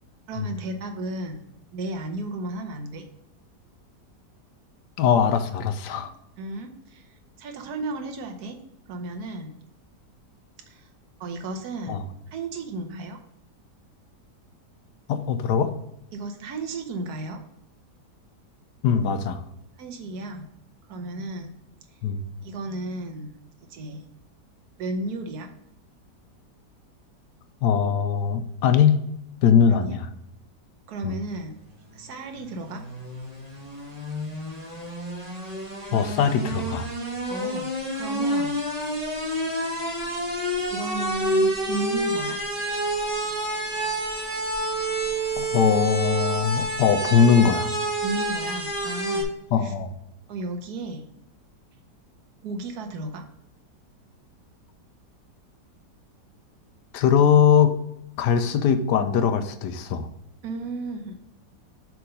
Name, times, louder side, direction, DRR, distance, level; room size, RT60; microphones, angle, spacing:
voice 1, 0.3-3.1 5.9-6.0 6.4-8.6 8.9-9.6 10.7-10.9 11.2-13.2 16.1-17.4 19.8-20.5 20.9-21.5 22.4-23.3 23.7-24.0 24.8-25.5 29.7-30.0 30.9-31.6 31.9-32.8 37.3-38.6 40.7-42.4 48.0-49.3 49.6-49.7 50.3-51.0 52.4-53.2 60.4-61.2, right 2 dB, 65° right, 5 dB, 1.4 m, -34 dB
voice 2, 5.0-6.1 11.9-12.0 15.1-15.7 18.8-19.4 22.0-22.2 27.6-29.0 29.4-30.1 31.0-31.1 35.9-36.9 45.4-47.7 49.5-49.9 56.9-57.7 58.2-60.1, left 7 dB, 85° left, 9 dB, 1.3 m, -21 dB
sound 1, 32.5-49.2, right 1 dB, 25° right, 1.4 m, -28 dB
7.7 x 3.7 x 5.2 m, 0.80 s
omnidirectional pair, 1.8 m